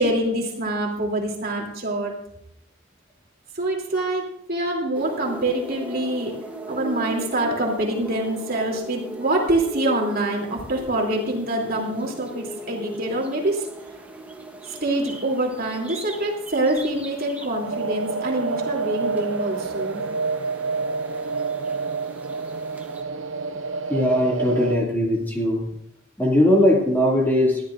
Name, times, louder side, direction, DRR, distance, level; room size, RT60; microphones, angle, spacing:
voice 1, 0.0-2.1 3.5-6.3 6.7-13.7 14.7-20.0, right 1 dB, 45° right, -1 dB, 3.1 m, -25 dB
sound 1, 4.9-23.0, right 1 dB, 5° right, 1.2 m, -38 dB
sound 2, 17.6-24.8, right 4 dB, 65° right, 0.6 m, -28 dB
voice 2, 23.9-25.7 26.2-27.6, left 1 dB, 10° left, -3 dB, 2.3 m, -20 dB
20.5 x 13.0 x 2.6 m, 0.74 s
head